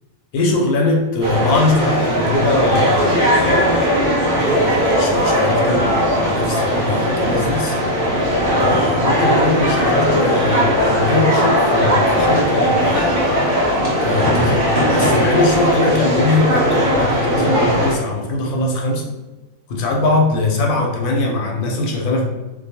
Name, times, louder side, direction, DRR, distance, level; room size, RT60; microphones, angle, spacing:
voice 1, 0.3-7.8 8.5-13.2 14.0-19.0 19.7-22.2, left 2 dB, 80° left, 0 dB, 1.0 m, -21 dB
sound 1, 1.2-18.0, equal, 55° right, 0.7 m, -18 dB
2.4 x 2.2 x 2.7 m, 1.1 s
omnidirectional pair, 1.5 m